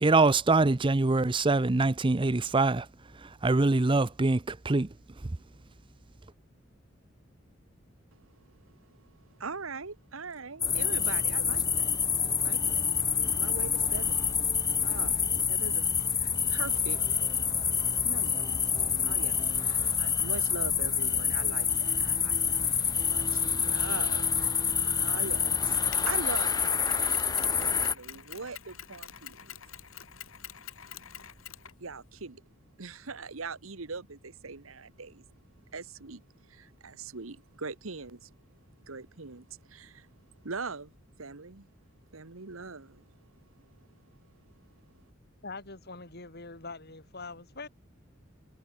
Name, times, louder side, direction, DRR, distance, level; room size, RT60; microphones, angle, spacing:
voice 1, 0.0-2.9 3.2-4.9, right 3 dB, 25° right, 0.6 m, -24 dB
voice 2, 8.2-11.9 12.4-12.9 13.4-14.2 14.8-17.0 18.0-18.5 19.0-29.5 31.8-32.4 32.8-35.2 35.7-38.3 38.8-40.1 40.4-40.9 41.2-41.7 42.1-43.1 43.6-43.8, right 4 dB, 90° right, 1.4 m, -42 dB
sound 1, 10.6-27.9, left 7 dB, 20° left, 1.2 m, -27 dB
sound 2, 10.7-27.2, equal, ahead, 3.7 m, -43 dB
Mechanisms, 25.9-32.3, left 10 dB, 90° left, 3.0 m, -46 dB
voice 3, 45.4-47.7, left 3 dB, 50° left, 4.6 m, -43 dB
head